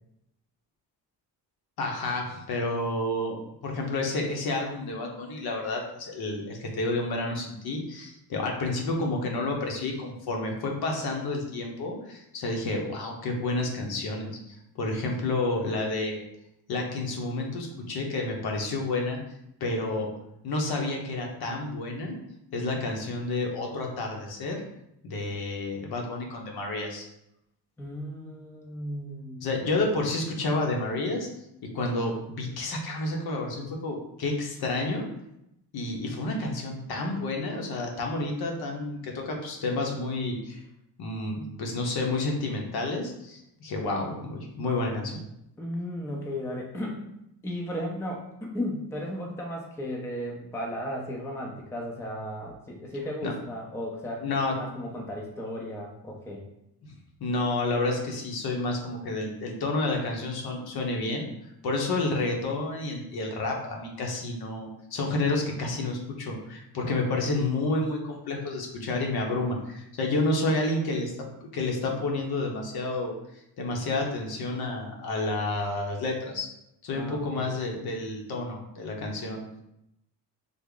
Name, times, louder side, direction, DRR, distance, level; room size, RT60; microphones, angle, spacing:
voice 1, 1.8-3.4 3.6-16.2 16.7-19.2 19.6-20.1 20.4-22.2 22.5-24.6 25.0-27.1 29.4-31.3 31.7-35.1 35.7-40.6 41.0-45.2 53.2-53.3 54.2-54.6 57.2-61.3 61.6-71.1 71.4-73.1 73.6-76.5 76.8-79.4, left 2 dB, 60° left, 1 dB, 0.8 m, -30 dB
voice 2, 27.8-29.5 45.6-47.0 47.4-56.4 76.9-77.5, equal, 5° left, -1 dB, 0.5 m, -35 dB
3.4 x 2.1 x 3.7 m, 0.82 s
cardioid pair, 120°, 42 cm